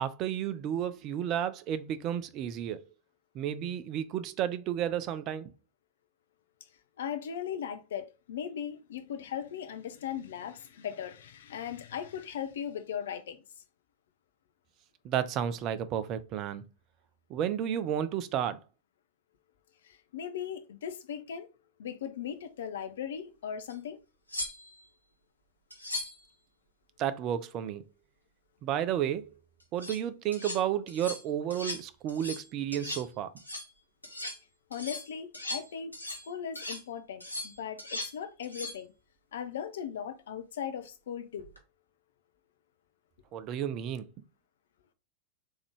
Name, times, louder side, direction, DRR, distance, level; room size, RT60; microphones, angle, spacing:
voice 1, 0.0-2.9 3.3-5.5 15.0-16.6 17.3-18.6 27.0-27.8 28.6-29.3 29.7-33.3 43.3-44.1, right 10 dB, 35° right, 0.4 m, -32 dB
voice 2, 7.0-13.4 19.8-21.5 21.8-24.0 34.7-35.9 36.3-38.9 39.3-41.5, left 8 dB, 60° left, 0.5 m, -38 dB
sound 1, 23.7-23.8 24.3-24.9 25.7-26.2 29.6-30.0 30.3-30.6 30.9-31.2 31.5-31.8 32.1-32.5 32.7-33.1 33.4-33.7 34.0-34.4 34.7-36.3 36.6-36.8 37.2-38.2 38.4-38.8 41.4-41.6, left 2 dB, 85° left, 0.9 m, -39 dB
3.6 x 3.5 x 3.3 m
figure-of-eight pair, 90°, 0 cm